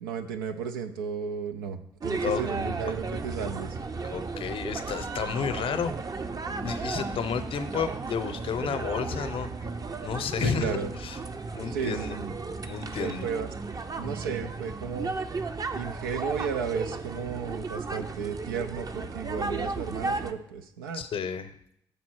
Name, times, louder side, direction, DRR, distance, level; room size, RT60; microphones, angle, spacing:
voice 1, 0.0-3.8 10.4-10.9 11.7-12.3 13.0-13.5 14.0-15.1 15.7-21.0, right 6 dB, 85° right, 8 dB, 0.6 m, -34 dB
sound 1, 2.0-20.3, right 3 dB, 35° right, 0.7 m, -34 dB
voice 2, 4.1-6.1 6.6-9.7 10.0-11.2 11.5-12.2 12.6-13.3 20.9-21.5, left 6 dB, 55° left, 10 dB, 0.7 m, -31 dB
6.8 x 4.2 x 6.2 m, 0.72 s
hypercardioid pair, 45°, 11 cm